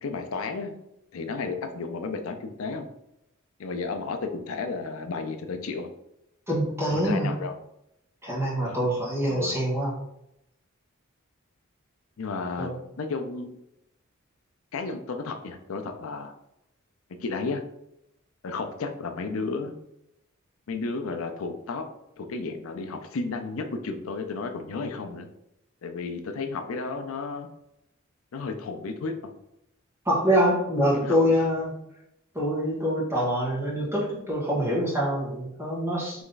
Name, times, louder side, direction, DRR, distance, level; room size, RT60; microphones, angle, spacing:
voice 1, 0.0-0.8 1.1-2.9 3.6-5.9 6.9-7.6 8.6-8.8 9.3-9.6 12.2-12.7 13.0-13.5 14.7-16.3 17.2-17.6 18.4-19.8 20.7-21.9 22.2-25.3 25.8-27.5 28.3-29.3 30.9-31.2, left 4 dB, 80° left, 6 dB, 0.5 m, -33 dB
voice 2, 6.5-7.4 8.2-10.0 12.6-12.8 30.0-31.7 32.3-36.2, equal, 15° right, -6 dB, 1.5 m, -25 dB
3.4 x 3.1 x 3.9 m, 0.81 s
head